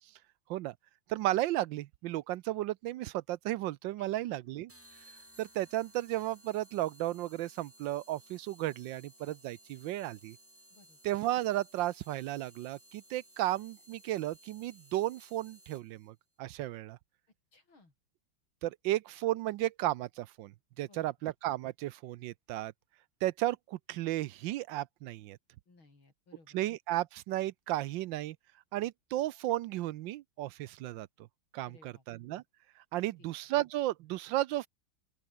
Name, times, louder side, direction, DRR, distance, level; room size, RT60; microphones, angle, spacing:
voice 1, 1.1-4.7 5.4-10.4 11.0-17.0 18.6-20.5 20.8-22.7 23.2-25.4 26.5-28.4 28.7-31.1 31.5-32.4 32.9-34.7, right 15 dB, 75° right, 1.2 m, -34 dB
voice 2, 4.0-4.4 10.7-11.0 17.5-17.9 20.8-21.1 25.7-26.6 31.6-32.0 33.0-33.3, left 3 dB, 85° left, 7.0 m, -61 dB
sound 1, 4.7-16.1, equal, 5° right, 3.9 m, -59 dB
open air
omnidirectional pair, 2.2 m